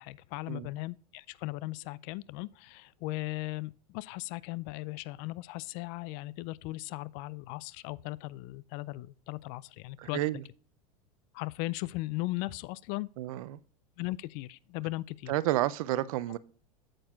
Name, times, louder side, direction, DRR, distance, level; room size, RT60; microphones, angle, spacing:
voice 1, 0.0-10.2 11.3-13.1 14.0-15.3, left 20 dB, 45° left, 0.4 m, -37 dB
voice 2, 10.0-10.4 13.2-13.6 15.3-16.4, right 15 dB, 60° right, 0.5 m, -30 dB
8.6 x 7.6 x 2.4 m
hypercardioid pair, 90°, 20 cm